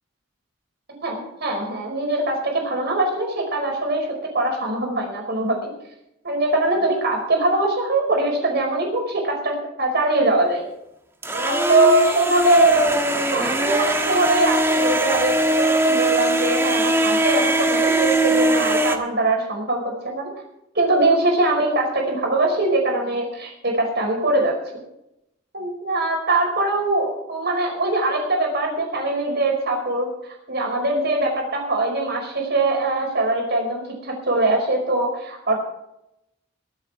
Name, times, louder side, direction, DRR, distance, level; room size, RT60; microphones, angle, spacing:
voice 1, 1.0-4.1 4.3-5.7 6.2-10.6 11.3-12.9 13.2-20.3 20.7-24.5 25.5-35.6, right 2 dB, 55° right, 1 dB, 5.0 m, -22 dB
sound 1, 11.2-19.0, right 1 dB, 15° right, 1.4 m, -21 dB
22.5 x 8.5 x 4.7 m, 0.84 s
head